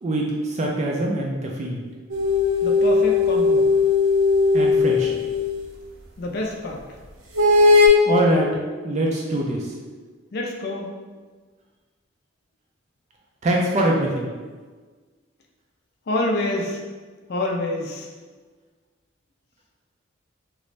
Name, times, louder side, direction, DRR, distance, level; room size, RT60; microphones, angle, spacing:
voice 1, 0.0-1.8 4.5-5.2 8.0-8.5 8.8-9.7 13.4-14.3, right 1 dB, 35° right, -1 dB, 0.4 m, -23 dB
sound 1, 2.1-5.4 7.4-7.9, left 3 dB, 80° right, 0.6 m, -18 dB
voice 2, 2.6-3.7 6.2-6.8 10.3-10.9 16.1-16.8 17.3-18.1, left 1 dB, 55° left, 0 dB, 0.4 m, -27 dB
3.0 x 2.5 x 3.2 m, 1.4 s
head